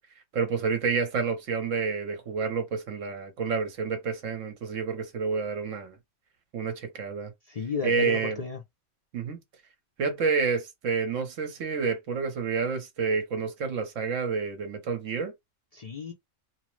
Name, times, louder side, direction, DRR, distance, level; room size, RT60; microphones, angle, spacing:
voice 1, 0.3-6.0 6.5-7.3 7.8-8.4 9.1-9.4 10.0-15.3, right 5 dB, 65° right, 1.1 m, -29 dB
voice 2, 7.5-8.6 15.7-16.1, left 5 dB, 65° left, 0.3 m, -33 dB
3.0 x 2.0 x 3.0 m
omnidirectional pair, 1.4 m